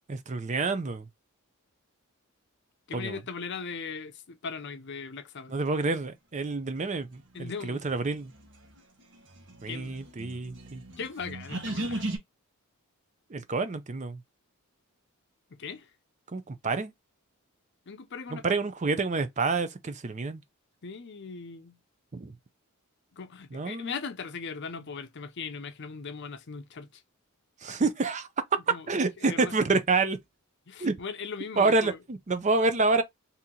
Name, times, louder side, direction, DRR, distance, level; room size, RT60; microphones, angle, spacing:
voice 1, 0.1-1.1 2.9-3.2 5.5-8.3 9.6-10.8 13.3-14.2 16.3-16.9 18.3-20.4 22.1-22.3 23.5-23.9 27.6-28.3 28.9-30.2 30.8-30.9 31.6-33.0, right 3 dB, 35° right, 0.5 m, -28 dB
voice 2, 2.9-5.5 7.3-7.9 9.7-10.0 11.0-12.0 15.5-15.9 17.9-18.6 20.8-21.8 23.1-27.0 28.7-28.9 29.2-29.6 30.7-32.0, left 5 dB, 50° left, 0.6 m, -39 dB
sound 1, 8.1-12.2, right 1 dB, 55° right, 1.1 m, -37 dB
2.9 x 2.8 x 3.7 m
head